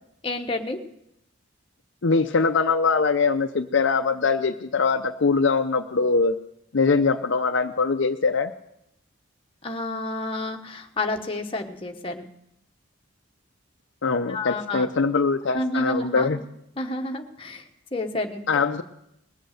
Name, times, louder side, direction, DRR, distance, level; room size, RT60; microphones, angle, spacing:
voice 1, 0.2-0.8 9.6-12.2 14.3-14.9 15.5-16.4 16.8-17.6 17.9-18.4, left 2 dB, 25° left, 3 dB, 1.1 m, -29 dB
voice 2, 2.0-6.4 6.7-8.5 14.0-16.4 18.5-18.8, left 4 dB, 60° left, 7 dB, 0.5 m, -22 dB
20.0 x 7.9 x 6.5 m, 0.80 s
head